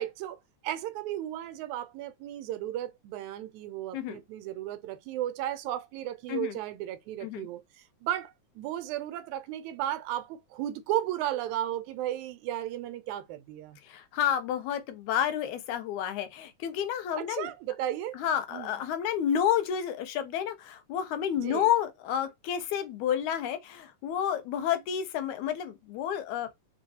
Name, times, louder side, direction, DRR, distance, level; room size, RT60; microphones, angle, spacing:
voice 1, 0.0-13.8 17.1-18.2 18.5-18.9 21.4-21.7, right 12 dB, 85° right, 2.0 m, -35 dB
voice 2, 13.8-17.5 18.1-26.5, left 9 dB, 85° left, 2.2 m, -30 dB
4.3 x 3.4 x 2.8 m
omnidirectional pair, 3.3 m